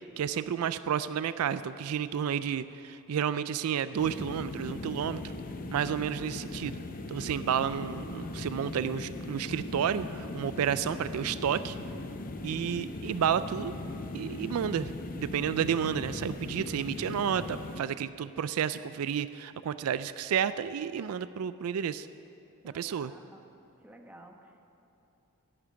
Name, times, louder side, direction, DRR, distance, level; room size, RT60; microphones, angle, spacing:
voice 1, 0.2-5.2 5.7-6.8 7.1-11.8 12.4-13.7 14.1-22.1 22.6-23.1, right 8 dB, 75° right, 14 dB, 0.3 m, -31 dB
sound 1, 4.0-17.8, left 2 dB, 40° left, 0.7 m, -39 dB
voice 2, 22.6-23.4 23.8-24.7, equal, 5° right, 3 dB, 1.0 m, -52 dB
11.0 x 8.7 x 9.3 m, 2.9 s
head